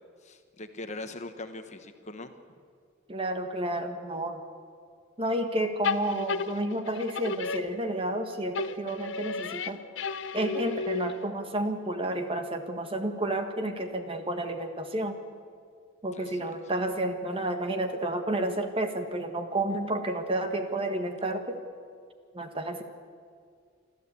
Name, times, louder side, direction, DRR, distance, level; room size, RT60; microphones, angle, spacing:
voice 1, 0.2-2.4 16.1-16.4, left 2 dB, 35° left, 8 dB, 1.1 m, -41 dB
voice 2, 3.1-4.4 5.2-9.8 10.3-15.2 16.0-21.6 22.3-22.8, right 1 dB, 30° right, 6 dB, 1.5 m, -31 dB
sound 1, 5.8-8.2 8.5-11.4, left 4 dB, 65° left, 0.7 m, -33 dB
25.5 x 13.5 x 8.4 m, 2.2 s
head